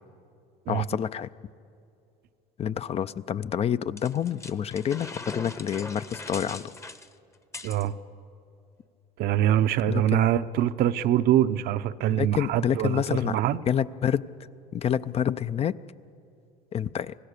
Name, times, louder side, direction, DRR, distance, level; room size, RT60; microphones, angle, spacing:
voice 1, 0.7-1.3 2.6-6.7 9.9-10.2 12.1-13.4 13.7-14.2 14.7-15.8 16.7-17.1, left 9 dB, 35° left, 14 dB, 0.5 m, -28 dB
sound 1, 4.0-7.9, left 3 dB, 15° left, 0.9 m, -40 dB
voice 2, 7.6-7.9 9.2-13.6, right 11 dB, 60° right, 11 dB, 0.7 m, -24 dB
25.5 x 18.5 x 6.7 m, 2.5 s
supercardioid pair, 95°, 18 cm